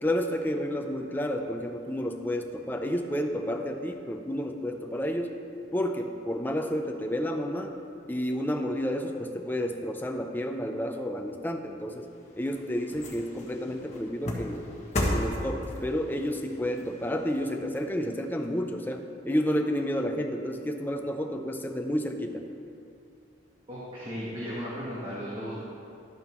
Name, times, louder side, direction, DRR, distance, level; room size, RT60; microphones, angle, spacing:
voice 1, 0.0-5.3 5.7-7.8 8.1-12.1 12.4-14.7 15.1-22.4, equal, 10° left, 4 dB, 0.5 m, -30 dB
sound 1, 12.0-18.5 18.9-19.0, left 1 dB, 40° left, 1.4 m, -35 dB
voice 2, 23.7-25.6, equal, 30° right, -8 dB, 1.4 m, -35 dB
11.5 x 8.9 x 3.1 m, 2.6 s
head